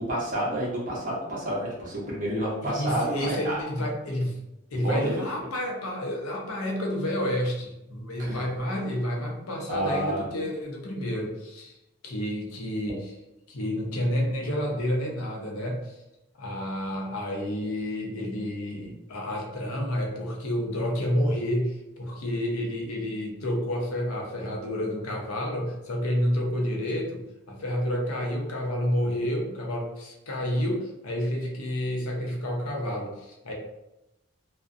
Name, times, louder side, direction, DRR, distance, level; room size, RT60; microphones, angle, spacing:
voice 1, 0.1-3.6 4.7-5.5 8.2-8.4 9.7-10.2, right 1 dB, 35° right, -5 dB, 0.7 m, -29 dB
voice 2, 2.6-4.4 4.7-11.7 12.0-13.1 13.5-15.9 16.4-33.5, equal, 85° left, 0 dB, 0.6 m, -29 dB
2.4 x 2.1 x 2.5 m, 0.92 s
head